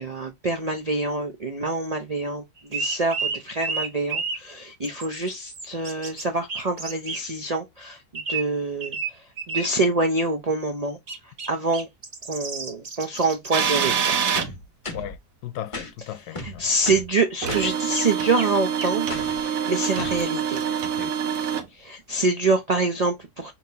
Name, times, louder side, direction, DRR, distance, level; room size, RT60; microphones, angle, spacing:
voice 1, 0.0-11.0 11.2-11.9 12.3-14.2 16.4-20.6 21.7-23.5, right 3 dB, 85° right, 0.3 m, -26 dB
sound 1, 2.6-4.4 4.8-6.2 6.5-7.2 8.1-8.4 8.8-9.1 9.4-9.7 11.1-11.5 11.7-13.7 17.6-17.7 17.9-18.0 18.4-18.5 18.8-18.9, right 4 dB, 35° right, 0.8 m, -31 dB
sound 2, 13.5-14.5 17.4-21.7, right 7 dB, 65° right, 1.1 m, -25 dB
sound 3, 14.4-15.2 15.7-15.9 16.4-17.1 17.5-17.7 19.1-19.4 20.0-20.2, left 2 dB, 30° left, 0.6 m, -35 dB
voice 2, 14.9-16.7 21.0-21.1 21.9-22.0, left 11 dB, 80° left, 1.1 m, -37 dB
5.4 x 2.8 x 2.8 m
omnidirectional pair, 1.7 m